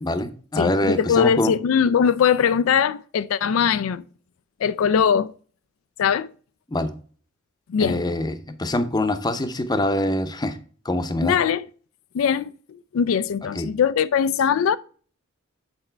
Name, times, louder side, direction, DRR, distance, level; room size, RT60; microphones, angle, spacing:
voice 1, 0.0-1.5 6.7-6.9 7.8-10.6 10.8-11.4 13.5-13.7, left 1 dB, 20° left, 0.7 m, -24 dB
voice 2, 0.6-4.0 4.6-5.3 6.0-6.3 7.7-8.0 11.2-11.7 12.1-12.5 12.9-14.8, left 7 dB, 80° left, 0.4 m, -21 dB
8.1 x 4.3 x 4.4 m
head